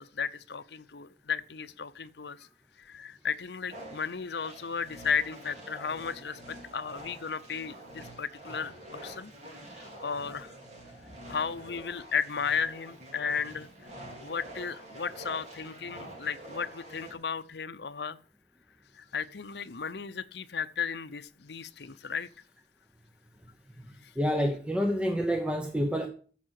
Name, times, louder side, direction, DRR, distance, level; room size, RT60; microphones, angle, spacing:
voice 1, 0.0-2.5 2.8-9.3 9.8-10.5 11.3-13.7 14.2-18.2 18.9-22.3 24.0-24.1, left 6 dB, 70° left, 0.7 m, -34 dB
sound 1, 3.7-17.1, right 1 dB, 40° right, 3.6 m, -47 dB
voice 2, 23.8-26.1, equal, 5° right, 0.9 m, -28 dB
14.0 x 5.8 x 6.5 m
head